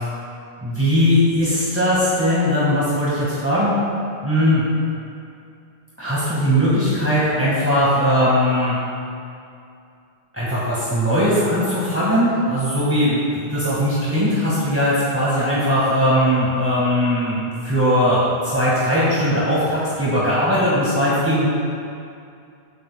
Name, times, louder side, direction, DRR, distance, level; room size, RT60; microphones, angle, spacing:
voice 1, 0.6-3.7 4.2-4.7 6.0-8.8 10.3-21.5, equal, 10° right, -9 dB, 1.0 m, -19 dB
18.5 x 7.9 x 2.4 m, 2.5 s
omnidirectional pair, 3.5 m